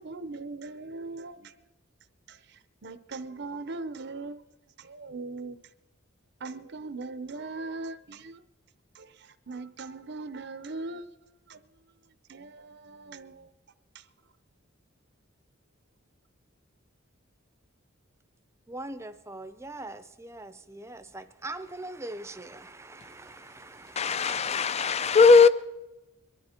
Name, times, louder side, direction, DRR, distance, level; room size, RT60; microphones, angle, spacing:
voice 1, 0.0-1.5 2.3-4.4 4.8-5.6 6.4-8.4 8.9-11.1 11.5-11.6 12.3-13.5 13.9-14.1, right 3 dB, 55° right, 0.7 m, -40 dB
voice 2, 18.7-25.2, right 2 dB, 15° right, 0.6 m, -42 dB
voice 3, 24.0-25.5, left 4 dB, 30° left, 0.5 m, -19 dB
22.5 x 12.5 x 4.4 m
head